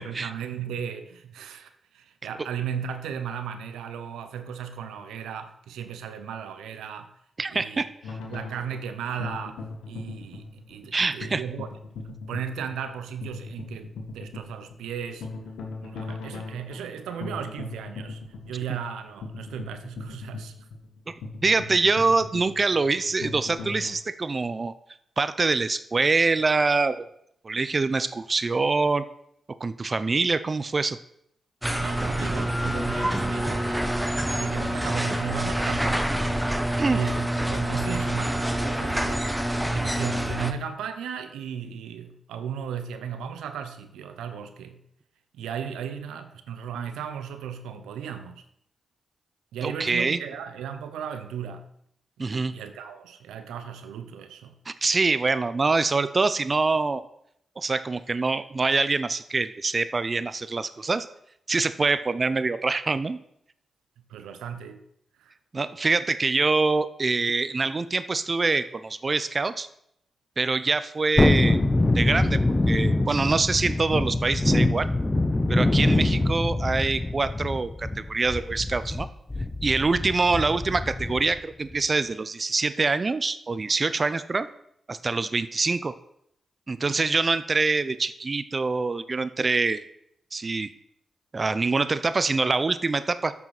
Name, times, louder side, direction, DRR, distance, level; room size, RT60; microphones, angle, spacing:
voice 1, 0.0-7.1 7.5-7.9 8.3-9.6 9.9-11.7 12.0-15.3 15.8-20.7 31.8-33.8 34.4-36.2 36.9-39.3 39.7-44.8 45.3-48.4 49.5-51.7 52.2-54.6 64.1-64.8 65.2-65.3, right 8 dB, 90° right, 9 dB, 0.8 m, -36 dB
voice 2, 7.4-7.9 10.9-11.4 21.1-24.7 25.2-27.1 27.4-29.0 29.6-31.0 36.8-37.0 49.6-50.2 52.2-52.5 54.7-57.0 57.6-61.1 61.5-63.2 65.5-69.7 70.4-71.6 71.9-72.4 72.7-74.9 75.5-79.1 79.6-84.5 84.9-85.9 86.7-89.8 90.3-90.7 91.3-93.3, right 3 dB, 40° right, 14 dB, 0.7 m, -25 dB
sound 1, 8.0-23.9, left 3 dB, 85° left, 1.6 m, -39 dB
sound 2, 31.6-40.5, right 1 dB, 5° right, 1.1 m, -26 dB
Thunderstorm, 71.2-81.4 81.7-81.8, left 2 dB, 25° left, 0.9 m, -24 dB
9.0 x 6.0 x 6.0 m, 0.73 s
supercardioid pair, 45°, 0 cm